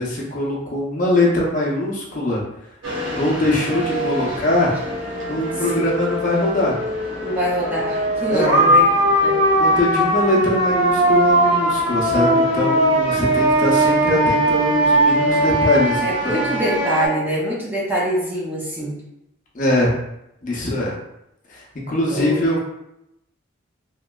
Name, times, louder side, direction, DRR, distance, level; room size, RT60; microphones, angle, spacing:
voice 1, 0.0-2.4 3.2-4.8 5.3-6.8 8.3-8.7 9.6-16.6 19.5-19.9 20.4-20.9 21.9-22.6, left 1 dB, 40° left, -4 dB, 0.6 m, -21 dB
sound 1, 2.8-17.1, right 1 dB, 75° right, 0.8 m, -20 dB
voice 2, 5.5-5.9 7.2-8.9 9.2-9.4 16.0-19.0 22.1-22.4, right 1 dB, 10° right, -6 dB, 0.5 m, -24 dB
2.9 x 2.5 x 2.3 m, 0.85 s
head